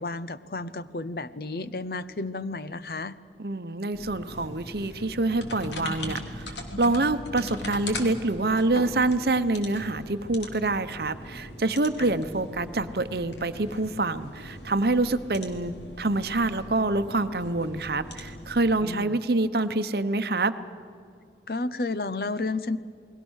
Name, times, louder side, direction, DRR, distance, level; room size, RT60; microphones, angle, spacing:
voice 1, 0.0-3.2 12.0-12.1 18.8-19.2 21.5-22.8, left 3 dB, 55° left, 14 dB, 0.7 m, -32 dB
voice 2, 3.4-20.5, right 2 dB, 60° right, 11 dB, 0.9 m, -26 dB
sound 1, 3.9-18.8, left 1 dB, 85° left, 3.0 m, -40 dB
29.0 x 21.0 x 6.4 m, 2.3 s
head